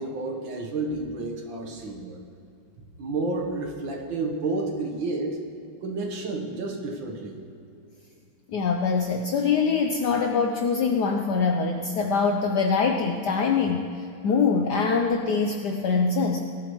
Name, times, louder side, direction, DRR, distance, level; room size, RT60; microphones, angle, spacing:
voice 1, 0.0-2.2 3.0-5.4 5.8-7.4, right 3 dB, 65° right, 3 dB, 1.9 m, -30 dB
voice 2, 8.5-13.8 14.2-16.4, left 5 dB, 70° left, 3 dB, 1.0 m, -23 dB
18.0 x 11.5 x 3.1 m, 2.5 s
omnidirectional pair, 2.4 m